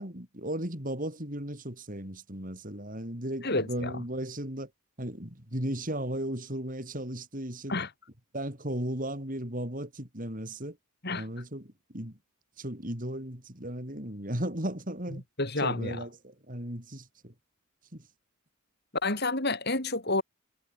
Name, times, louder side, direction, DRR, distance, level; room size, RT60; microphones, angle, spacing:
voice 1, 0.0-4.7 5.0-7.8 8.3-10.8 11.1-12.2 12.6-15.2 15.6-17.3 17.9-18.1, right 1 dB, 40° right, 5.7 m, -36 dB
voice 2, 3.4-3.9 7.7-7.9 11.0-11.3 15.4-16.0 19.0-20.2, left 2 dB, 50° left, 6.1 m, -29 dB
head